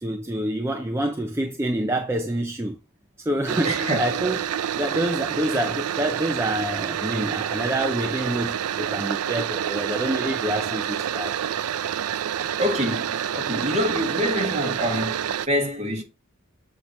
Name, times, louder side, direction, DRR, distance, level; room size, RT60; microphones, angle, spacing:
voice 1, 0.0-2.8 3.3-4.4 4.7-11.7, right 1 dB, 10° right, 0.5 m, -27 dB
sound 1, 3.5-15.5, right 9 dB, 85° right, 0.4 m, -28 dB
voice 2, 3.6-4.0 12.6-16.0, equal, 30° right, 1.7 m, -26 dB
8.0 x 2.9 x 5.3 m
head